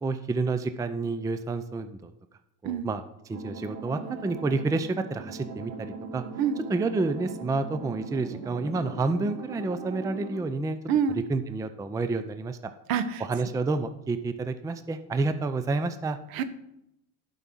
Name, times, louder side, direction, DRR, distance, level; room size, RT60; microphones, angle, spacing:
voice 1, 0.0-2.1 2.6-6.2 6.7-10.8 11.3-12.6 13.2-16.2, right 3 dB, 10° right, 10 dB, 0.5 m, -29 dB
sound 1, 3.3-10.4, right 4 dB, 80° right, 3.0 m, -40 dB
voice 2, 10.9-11.2 12.9-13.2 16.3-16.4, right 7 dB, 65° right, 11 dB, 1.2 m, -26 dB
11.0 x 5.4 x 6.1 m, 0.83 s
supercardioid pair, 120°, 39 cm